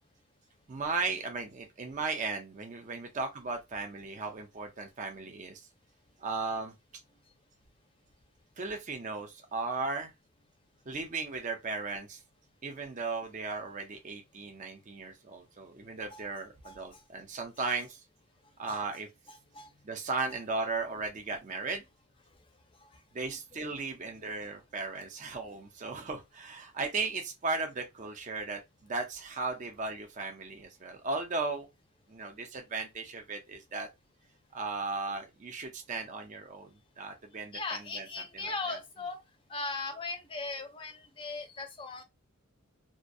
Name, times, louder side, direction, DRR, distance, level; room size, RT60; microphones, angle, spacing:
voice 1, 0.7-5.6 6.2-6.7 8.6-10.1 10.9-12.2 12.6-18.0 18.6-19.1 19.8-21.8 23.1-31.7 32.1-33.9 34.5-38.8, right 3 dB, 35° right, 0.4 m, -36 dB
voice 2, 37.5-39.2 39.5-42.0, left 3 dB, 25° left, 0.5 m, -38 dB
2.3 x 2.1 x 2.5 m
head